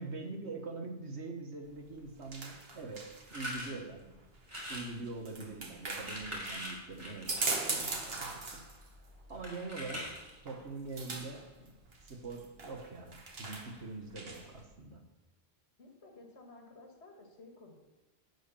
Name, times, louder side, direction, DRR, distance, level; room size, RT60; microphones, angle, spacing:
voice 1, 0.0-4.1 4.7-7.4 7.7-8.6 9.3-10.2 10.4-11.7 12.0-15.0, right 3 dB, 90° right, 3 dB, 1.8 m, -43 dB
sound 1, 1.7-14.6, right 3 dB, 65° right, 1.6 m, -42 dB
sound 2, 3.3-3.7 4.4-4.9 5.8-8.3 9.4-10.4, equal, 25° right, 3.5 m, -42 dB
voice 2, 15.8-17.8, left 2 dB, 85° left, 2 dB, 2.1 m, -54 dB
12.0 x 5.0 x 8.4 m, 1.1 s
omnidirectional pair, 1.1 m